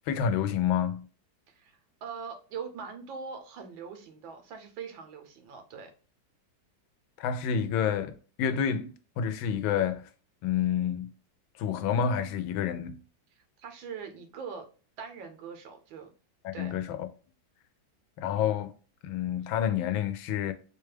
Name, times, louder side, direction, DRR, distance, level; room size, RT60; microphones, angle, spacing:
voice 1, 0.1-1.1 7.2-10.1 10.4-11.1 11.6-13.0 16.4-17.1 18.2-18.7 19.0-20.5, left 8 dB, 90° left, 1.4 m, -29 dB
voice 2, 1.5-5.9 13.4-14.7 15.0-16.1 16.5-16.7, right 6 dB, 80° right, 1.6 m, -42 dB
4.7 x 2.3 x 3.1 m
omnidirectional pair, 2.1 m